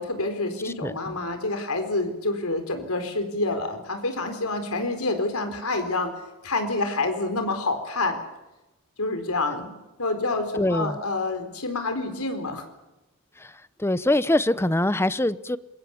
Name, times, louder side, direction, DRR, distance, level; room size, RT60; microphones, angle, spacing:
voice 1, 0.0-6.1 6.4-8.2 9.0-12.7, left 2 dB, 80° left, 4.2 m, -28 dB
voice 2, 0.6-1.2 10.6-11.0 13.4-13.5 13.8-15.6, left 1 dB, 10° left, 0.8 m, -24 dB
28.0 x 22.5 x 7.2 m
head